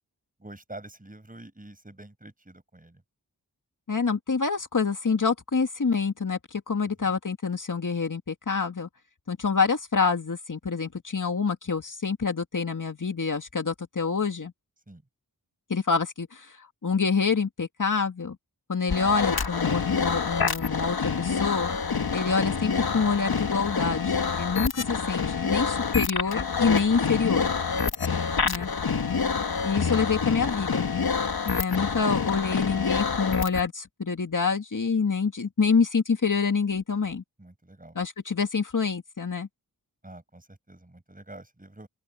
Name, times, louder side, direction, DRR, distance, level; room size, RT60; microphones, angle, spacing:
voice 1, 0.4-3.0 7.0-7.1 14.9-15.0 22.0-22.3 28.9-29.4 37.4-38.0 40.0-41.9, right 1 dB, 20° right, 5.7 m, -47 dB
voice 2, 3.9-8.9 9.3-14.5 15.7-18.4 18.7-21.8 22.1-27.5 28.4-28.7 29.6-30.9 31.5-37.2 38.0-39.5, left 5 dB, 55° left, 2.2 m, -27 dB
sound 1, 18.9-33.7, left 5 dB, 75° left, 1.7 m, -27 dB
open air
wide cardioid pair, 80°, 37 cm